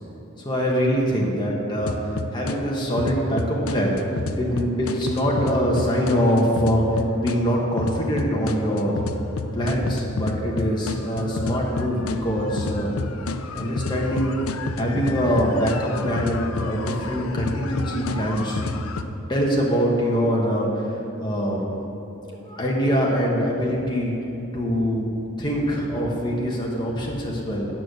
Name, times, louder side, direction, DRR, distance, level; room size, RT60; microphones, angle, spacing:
voice 1, 0.4-2.0 2.3-4.0 4.4-6.8 7.2-9.0 9.5-12.9 13.5-14.3 14.8-18.6 19.3-20.8 21.2-21.8 22.3-24.1 24.5-25.1 25.4-27.7, equal, 20° left, -3 dB, 1.4 m, -23 dB
sound 1, 1.8-2.6 3.0-7.4 7.8-19.0, left 3 dB, 85° left, 0.5 m, -29 dB
9.3 x 6.5 x 6.4 m, 2.9 s
head